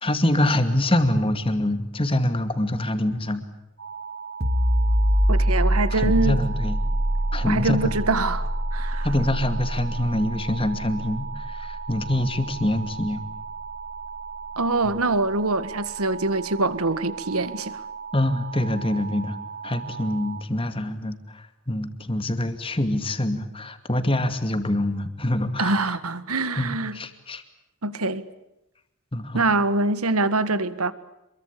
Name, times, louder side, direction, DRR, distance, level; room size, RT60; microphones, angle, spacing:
voice 1, 0.0-3.4 5.9-6.8 7.3-7.9 9.0-13.2 14.8-14.9 18.1-19.4 19.6-25.9 26.6-27.4 29.1-29.5, left 1 dB, 25° left, 2.3 m, -25 dB
sound 1, 3.8-20.4, right 6 dB, 65° right, 3.6 m, -38 dB
sound 2, 4.4-15.8, equal, 45° right, 2.1 m, -26 dB
voice 2, 5.3-6.4 7.4-9.1 14.6-17.8 25.6-27.0 27.8-28.2 29.3-30.9, right 2 dB, 80° right, 1.7 m, -24 dB
27.5 x 23.0 x 8.5 m
head